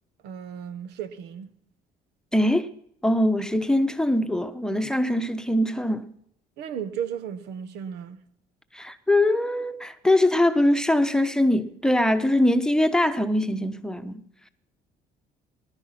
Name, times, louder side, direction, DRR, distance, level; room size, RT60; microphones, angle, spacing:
voice 1, 0.2-1.5 6.6-8.2, right 8 dB, 85° right, 1.3 m, -34 dB
voice 2, 2.3-2.7 3.0-6.1 8.7-14.2, left 1 dB, 5° left, 1.0 m, -22 dB
20.5 x 11.5 x 5.9 m
cardioid pair, 110°, 17 cm